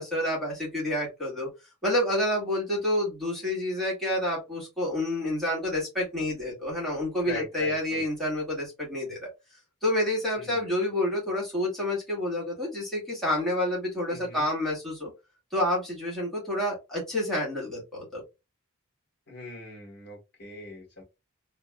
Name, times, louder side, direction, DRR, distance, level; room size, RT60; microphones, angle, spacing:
voice 1, 0.0-1.5 1.8-9.3 9.8-15.1 15.5-18.2, left 1 dB, ahead, -6 dB, 1.9 m, -29 dB
voice 2, 7.2-8.0 10.3-10.6 14.1-14.4 19.3-21.0, left 2 dB, 55° left, -1 dB, 1.9 m, -40 dB
3.4 x 3.0 x 2.2 m, 0.24 s
head